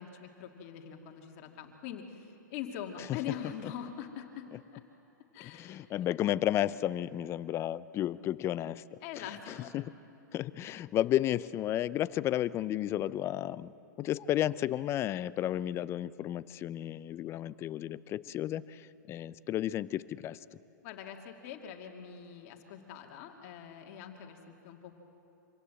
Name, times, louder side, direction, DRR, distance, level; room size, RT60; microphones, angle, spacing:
voice 1, 0.0-4.8 5.3-5.8 9.0-9.7 20.8-24.9, left 8 dB, 50° left, 3 dB, 2.3 m, -43 dB
voice 2, 5.4-9.9 10.3-13.7 14.0-20.4, left 12 dB, 25° left, 18 dB, 0.5 m, -33 dB
25.5 x 16.5 x 7.8 m, 2.8 s
hypercardioid pair, 125°, 10 cm